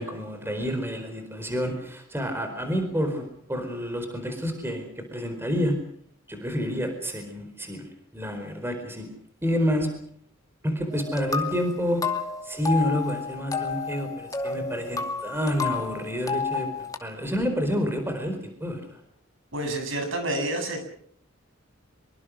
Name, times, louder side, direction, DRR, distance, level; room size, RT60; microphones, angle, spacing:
voice 1, 0.0-5.8 6.3-9.1 9.4-10.0 10.6-12.2 12.4-19.0, equal, 10° right, 6 dB, 4.5 m, -29 dB
sound 1, 10.9-17.0, left 5 dB, 15° left, 2.4 m, -31 dB
voice 2, 19.5-20.8, right 1 dB, 65° right, 6 dB, 7.6 m, -28 dB
25.0 x 23.5 x 6.4 m, 0.63 s
head